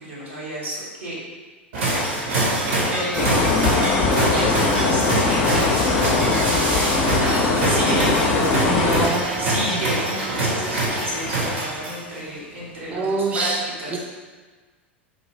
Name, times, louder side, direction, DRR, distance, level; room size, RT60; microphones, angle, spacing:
voice 1, 0.0-1.2 2.7-7.3 7.6-13.5 13.8-14.0, right 1 dB, 75° right, -7 dB, 1.2 m, -31 dB
sound 1, 1.7-12.2, right 2 dB, 55° right, 1.0 m, -24 dB
sound 2, 3.2-9.1, left 4 dB, 45° left, 0.5 m, -21 dB
voice 2, 7.2-7.7 8.6-9.8 12.9-13.6 13.9-14.0, right 3 dB, 20° right, 1 dB, 0.6 m, -26 dB
4.0 x 2.5 x 3.2 m, 1.4 s
figure-of-eight pair, 85°, 6 cm